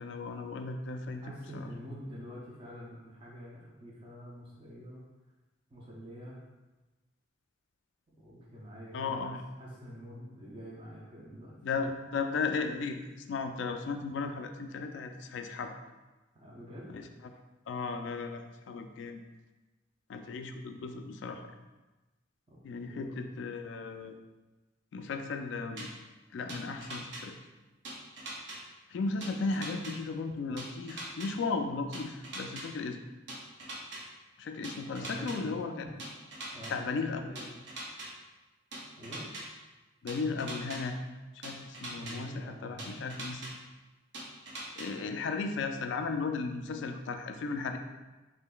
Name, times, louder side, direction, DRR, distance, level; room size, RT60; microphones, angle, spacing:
voice 1, 0.0-1.2 1.5-1.7 8.9-9.4 11.6-15.7 16.9-17.0 17.7-19.2 20.1-21.4 22.6-24.2 24.9-25.9 26.3-27.3 28.9-33.0 34.4-35.8 36.7-37.3 40.0-41.0 41.3-43.5 44.8-47.8, left 4 dB, 65° left, 6 dB, 0.3 m, -35 dB
voice 2, 1.2-5.0 5.7-6.4 8.1-11.6 16.3-16.9 22.5-22.6 22.8-23.3 35.0-35.9 36.5-37.5 39.0-39.3 41.9-43.1, equal, 25° right, -5 dB, 0.5 m, -46 dB
sound 1, 25.8-25.9 26.5-27.2 27.8-28.6 29.2-29.9 30.6-31.3 31.9-32.6 33.3-34.0 34.6-35.4 36.0-36.7 37.4-38.1 38.7-39.4 40.1-40.8 41.4-42.1 42.8-43.5 44.1-44.9, right 2 dB, 60° right, 0.7 m, -41 dB
3.7 x 3.3 x 2.2 m, 1.1 s
head